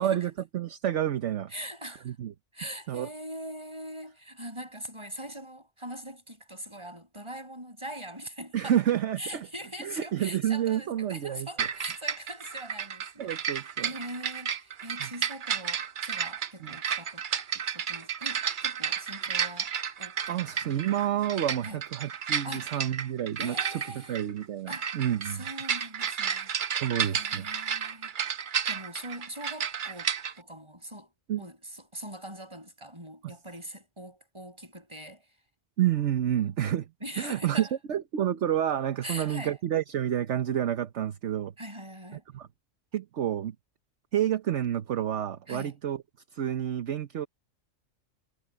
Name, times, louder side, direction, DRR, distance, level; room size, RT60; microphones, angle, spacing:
voice 1, 0.0-1.5 2.0-2.3 2.9-3.1 8.5-9.5 9.8-11.7 13.2-13.9 15.0-15.1 16.6-16.8 20.3-25.4 26.7-27.5 31.3-31.4 33.2-33.3 35.8-36.9 37.2-41.5 42.3-42.5 42.9-43.5 44.1-46.0 46.3-47.3, right 10 dB, 65° right, 1.2 m, -29 dB
voice 2, 1.5-2.1 2.5-8.8 9.2-17.3 17.5-19.7 20.0-20.8 21.6-21.8 22.4-22.8 23.4-24.2 24.7-26.5 27.0-28.1 28.6-31.1 31.4-35.3 37.0-37.7 39.0-39.6 41.6-42.2 45.5-45.8, right 1 dB, 20° right, 6.5 m, -42 dB
sound 1, 11.6-30.3, right 7 dB, 45° right, 0.8 m, -32 dB
omnidirectional pair, 1.4 m